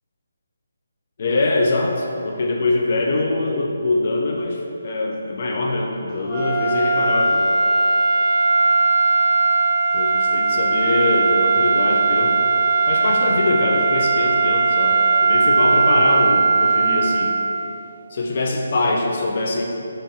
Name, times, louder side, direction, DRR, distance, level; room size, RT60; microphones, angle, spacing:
voice 1, 1.2-7.5 9.9-12.3 12.9-17.3 18.1-19.6, left 2 dB, 50° left, 0 dB, 0.4 m, -23 dB
sound 1, 6.3-17.8, right 4 dB, 25° right, 0.5 m, -18 dB
3.8 x 2.5 x 2.7 m, 2.7 s
figure-of-eight pair, 155°, 0 cm